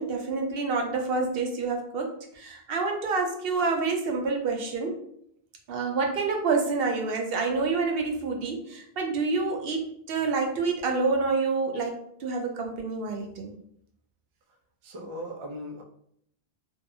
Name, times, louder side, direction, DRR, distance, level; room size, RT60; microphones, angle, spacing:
voice 1, 0.0-5.0 5.7-13.5, right 4 dB, 65° right, 2 dB, 0.7 m, -28 dB
voice 2, 14.8-15.8, equal, 50° right, 2 dB, 0.3 m, -38 dB
2.6 x 2.3 x 2.6 m, 0.68 s
omnidirectional pair, 1.1 m